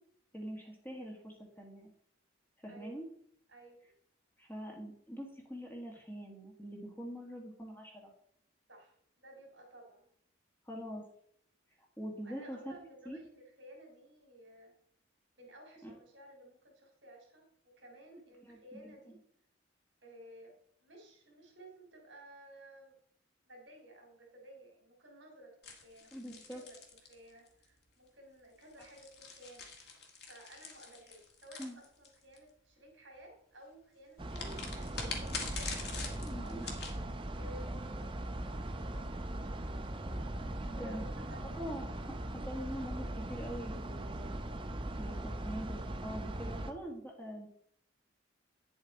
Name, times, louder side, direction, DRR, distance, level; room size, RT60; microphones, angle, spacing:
voice 1, 0.3-1.9 2.6-3.0 4.4-8.1 10.7-11.1 12.0-12.7 13.1-13.2 15.8-15.9 18.4-18.6 19.1-19.2 26.1-26.6 31.6-31.8 36.2-36.7 40.6-41.0 41.4-44.3 45.0-47.5, equal, 10° left, 0 dB, 1.8 m, -44 dB
voice 2, 2.7-3.0 3.5-3.8 8.7-10.1 12.2-14.7 15.4-17.5 17.8-19.2 20.0-20.5 20.8-23.0 23.4-29.7 30.3-41.8, right 1 dB, 65° right, 1 dB, 3.5 m, -55 dB
sound 1, 25.6-27.6 28.6-32.4 34.3-37.0, left 4 dB, 55° left, 1.8 m, -44 dB
sound 2, 34.2-46.7, right 1 dB, 25° right, 0.7 m, -40 dB
9.6 x 7.3 x 4.2 m, 0.66 s
head